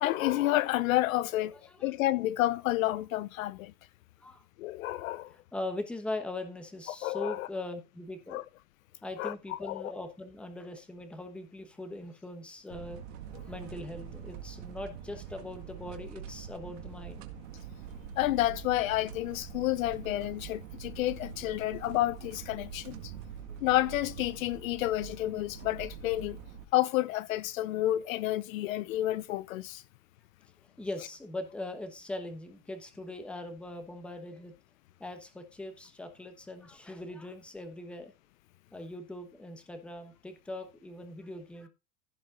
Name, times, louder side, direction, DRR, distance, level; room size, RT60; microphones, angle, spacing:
voice 1, 0.0-3.7 4.6-5.3 7.0-7.5 8.3-8.4 9.2-9.9 18.2-23.1 23.6-26.4 26.7-29.8, left 15 dB, 60° left, 0.7 m, -30 dB
voice 2, 5.5-8.4 9.0-13.0 13.3-17.3 30.8-34.5 35.0-38.1 38.7-41.7, left 2 dB, ahead, 1.0 m, -40 dB
sound 1, 12.7-26.7, right 8 dB, 55° right, 1.9 m, -44 dB
16.0 x 5.3 x 3.8 m
supercardioid pair, 165°, 45 cm